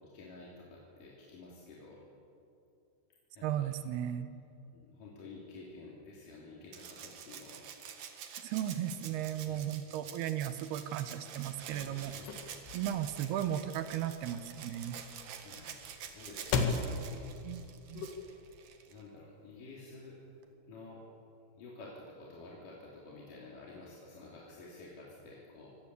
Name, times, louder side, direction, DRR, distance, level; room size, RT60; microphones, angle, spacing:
voice 1, 0.1-2.0 3.3-3.7 4.7-7.7 9.5-9.8 11.8-12.3 15.4-15.7 16.0-17.3 18.9-20.2 20.7-21.0 21.6-25.8, left 3 dB, 55° left, -4 dB, 4.6 m, -51 dB
voice 2, 3.4-4.3 8.4-12.1 12.7-15.0 17.4-17.6 17.9-18.1, right 11 dB, 75° right, 10 dB, 3.0 m, -35 dB
Rattle (instrument), 6.7-19.0 20.4-20.5, right 8 dB, 60° right, 3.0 m, -48 dB
sound 1, 11.5-18.6, left 4 dB, 75° left, 3.9 m, -39 dB
25.0 x 19.0 x 8.4 m, 2.7 s
omnidirectional pair, 4.8 m